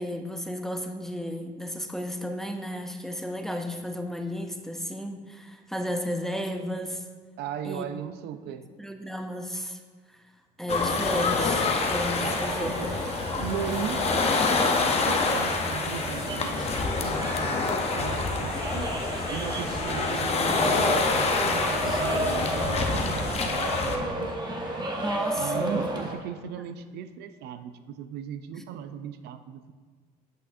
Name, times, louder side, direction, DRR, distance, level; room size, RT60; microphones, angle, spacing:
voice 1, 0.0-7.1 7.6-7.9 8.5-9.8 10.1-10.2 10.6-12.8 18.5-18.7 25.0-25.8 26.6-26.7 28.6-28.7, equal, ahead, 4 dB, 0.4 m, -33 dB
voice 2, 7.4-8.8 12.2-13.0 13.2-18.9 19.3-24.4 25.4-29.7, right 9 dB, 75° right, 10 dB, 0.4 m, -37 dB
sound 1, 10.7-24.0, left 4 dB, 35° left, 0.7 m, -27 dB
sound 2, 11.0-26.1, right 1 dB, 25° right, 1.0 m, -33 dB
8.0 x 6.1 x 2.6 m, 1.5 s
cardioid pair, 110°, 17 cm